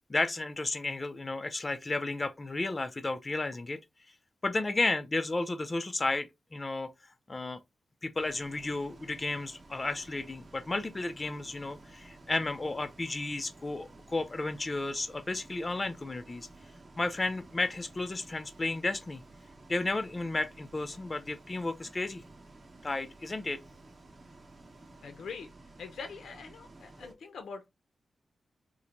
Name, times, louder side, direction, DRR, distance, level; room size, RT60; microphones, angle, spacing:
voice 1, 0.1-3.8 4.4-6.9 7.3-7.6 8.0-16.5 17.0-19.2 19.7-22.2 22.8-23.6 27.0-27.1, left 2 dB, 30° left, 0.4 m, -33 dB
Bus, 8.1-27.1, right 2 dB, 40° right, 0.9 m, -54 dB
voice 2, 25.0-25.5 25.8-27.7, left 5 dB, 90° left, 0.5 m, -43 dB
3.8 x 2.1 x 2.8 m
wide cardioid pair, 105°, 0 cm